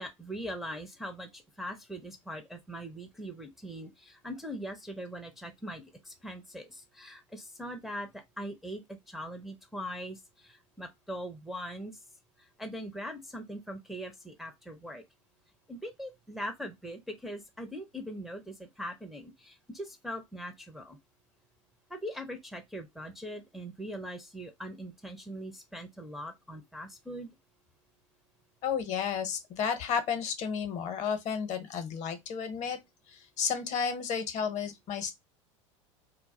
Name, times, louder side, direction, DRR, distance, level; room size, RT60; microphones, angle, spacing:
voice 1, 0.0-12.0 12.4-15.0 15.7-21.0 21.9-27.3, equal, ahead, 0.5 m, -41 dB
voice 2, 28.6-32.8 33.1-35.1, left 7 dB, 45° left, 0.7 m, -32 dB
2.2 x 2.0 x 3.5 m
hypercardioid pair, 85°, 17 cm